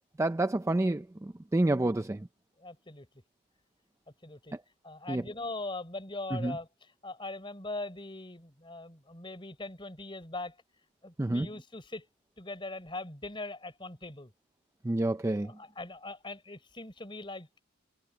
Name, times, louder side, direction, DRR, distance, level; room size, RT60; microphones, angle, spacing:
voice 1, 0.2-2.3 5.1-5.2 6.3-6.6 11.2-11.5 14.8-15.5, right 2 dB, 15° right, 0.3 m, -28 dB
voice 2, 2.6-3.1 4.2-4.5 4.8-10.6 11.0-12.1 12.4-14.3 15.4-17.6, left 2 dB, 20° left, 4.0 m, -41 dB
head